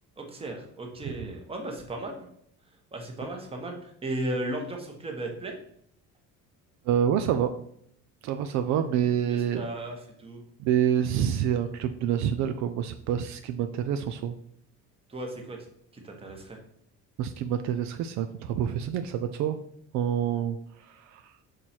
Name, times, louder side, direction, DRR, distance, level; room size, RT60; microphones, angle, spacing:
voice 1, 0.2-2.3 2.9-5.5 9.3-10.4 15.1-15.7 15.9-16.6, right 1 dB, 20° right, 2 dB, 1.2 m, -35 dB
voice 2, 6.9-7.5 8.2-9.7 10.6-14.4 17.2-19.6 19.9-21.3, right 9 dB, 70° right, 9 dB, 0.5 m, -27 dB
6.5 x 4.4 x 4.3 m, 0.69 s
cardioid pair, 160°, 30 cm